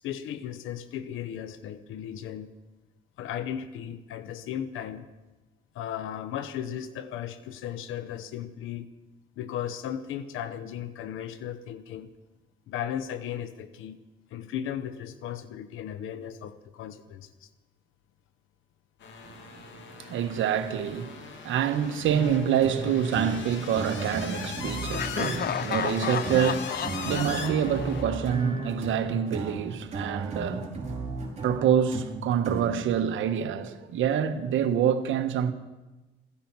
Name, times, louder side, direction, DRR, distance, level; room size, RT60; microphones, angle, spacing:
voice 1, 0.0-2.5 3.2-5.0 5.7-8.9 9.4-12.1 12.7-14.0 14.3-17.5, left 10 dB, 90° left, 0.9 m, -36 dB
sound 1, 19.0-28.0, left 6 dB, 70° left, 2.3 m, -40 dB
voice 2, 19.2-30.7 31.4-35.5, right 9 dB, 80° right, 1.3 m, -27 dB
sound 2, 22.1-32.9, right 2 dB, 35° right, 5.0 m, -35 dB
Laughter, 24.9-28.8, left 8 dB, 50° left, 0.7 m, -33 dB
16.0 x 14.5 x 6.1 m
cardioid pair, 90°, 20 cm